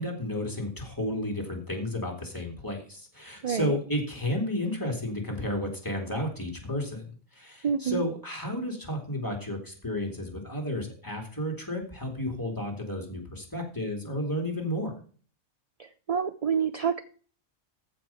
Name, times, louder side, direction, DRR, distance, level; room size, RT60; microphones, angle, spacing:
voice 1, 0.0-14.9, left 1 dB, 15° left, 2 dB, 2.7 m, -32 dB
voice 2, 3.4-3.8 7.6-8.1 15.8-17.0, right 7 dB, 45° right, 11 dB, 0.5 m, -28 dB
14.5 x 5.3 x 5.7 m, 0.42 s
omnidirectional pair, 1.3 m